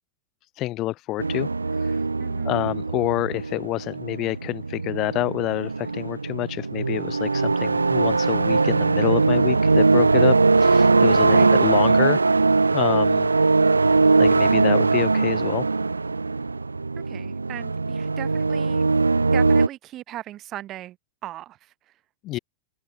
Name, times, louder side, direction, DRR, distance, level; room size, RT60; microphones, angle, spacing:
voice 1, 0.6-1.5 1.8-2.0 2.4-12.2 12.7-13.3 14.2-15.7 22.2-22.4, left 17 dB, 35° left, 5.1 m, -27 dB
sound 1, 1.2-19.7, right 3 dB, 80° right, 3.6 m, -20 dB
voice 2, 2.2-2.5 11.2-11.5 17.0-18.8 19.3-21.0 21.2-21.7 22.3-22.4, right 14 dB, 35° right, 4.7 m, -38 dB
figure-of-eight pair, 90°, 0 cm